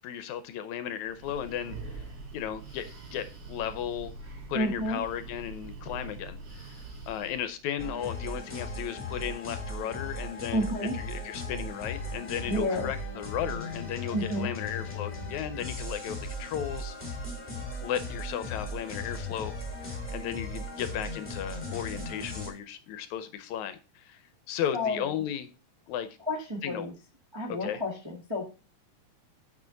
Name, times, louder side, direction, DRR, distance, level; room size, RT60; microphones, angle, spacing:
voice 1, 0.0-2.0 2.3-4.1 4.5-6.8 7.1-10.7 10.9-17.0 17.8-19.6 20.1-24.2 24.5-25.5 25.9-26.1 26.6-26.9 27.6-27.8, left 10 dB, 75° left, 11 dB, 1.9 m, -35 dB
Breathing, 1.0-7.6, right 3 dB, 80° right, 4.3 m, -44 dB
voice 2, 4.5-5.0 10.5-10.9 12.5-12.9 14.1-14.5 24.7-25.1 26.3-26.9 27.3-28.4, left 1 dB, 20° right, -2 dB, 0.8 m, -30 dB
sound 1, 7.8-22.5, left 1 dB, 15° left, 2.0 m, -37 dB
8.5 x 6.3 x 3.9 m, 0.33 s
omnidirectional pair, 3.5 m